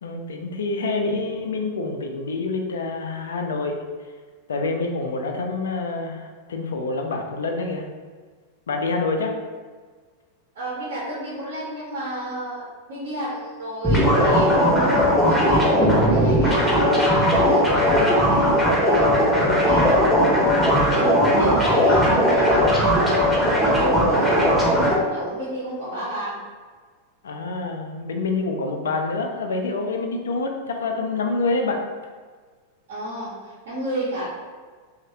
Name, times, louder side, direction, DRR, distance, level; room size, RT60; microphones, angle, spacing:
voice 1, 0.0-3.8 4.5-7.8 8.7-9.3 27.2-31.8, left 3 dB, 65° left, 3 dB, 0.4 m, -27 dB
voice 2, 10.5-12.6 12.9-20.0 20.9-26.4 32.9-34.3, right 1 dB, 60° right, -7 dB, 0.8 m, -31 dB
sound 1, 13.8-24.9, equal, 5° left, 0.7 m, -18 dB
3.0 x 2.1 x 2.7 m, 1.5 s
figure-of-eight pair, 90°, 0 cm